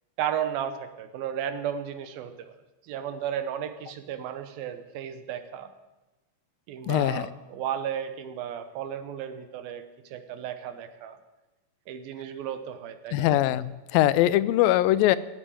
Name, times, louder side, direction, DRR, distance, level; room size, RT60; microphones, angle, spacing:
voice 1, 0.2-2.6 2.8-5.7 6.7-11.2 11.9-13.3, right 9 dB, 85° right, 9 dB, 2.9 m, -34 dB
voice 2, 6.9-7.3 13.1-15.2, left 14 dB, 85° left, 17 dB, 2.3 m, -22 dB
15.5 x 8.7 x 8.8 m, 1.1 s
omnidirectional pair, 4.1 m